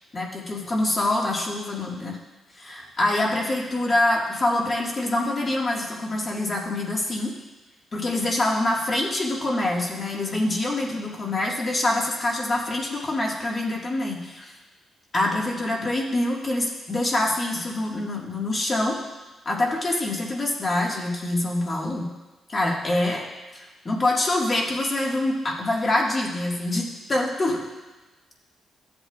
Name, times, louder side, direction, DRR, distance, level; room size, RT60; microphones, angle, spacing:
voice 1, 0.1-2.2 2.6-7.3 7.9-14.5 15.1-19.0 19.4-22.1 22.5-23.2 23.5-27.6, left 2 dB, 30° left, -2 dB, 1.7 m, -25 dB
14.5 x 7.8 x 2.4 m, 1.2 s
cardioid pair, 115°, 0 cm